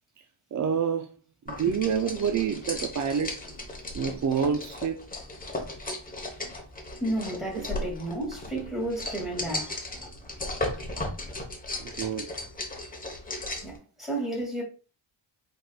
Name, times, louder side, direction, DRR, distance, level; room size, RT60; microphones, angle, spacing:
voice 1, 0.5-1.1 1.5-3.4 3.9-5.1 11.8-12.3, right 7 dB, 40° right, 0.4 m, -27 dB
sound 1, 1.5-13.8, left 2 dB, 15° left, 1.1 m, -36 dB
voice 2, 7.0-9.7 13.6-14.6, right 1 dB, ahead, 2.4 m, -32 dB
4.6 x 4.5 x 2.4 m
wide cardioid pair, 130°, 49 cm